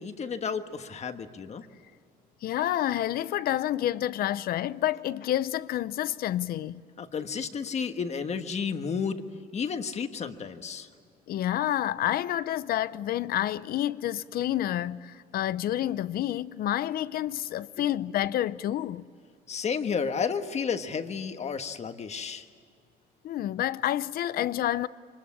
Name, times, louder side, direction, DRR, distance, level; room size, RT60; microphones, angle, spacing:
voice 1, 0.0-1.6 7.0-9.2 9.5-10.9 17.8-17.9 19.5-22.4, left 6 dB, 40° left, 1.5 m, -32 dB
voice 2, 2.4-6.8 11.3-19.0 23.2-24.9, left 12 dB, 60° left, 0.7 m, -29 dB
25.0 x 21.0 x 8.6 m
cardioid pair, 110°, 17 cm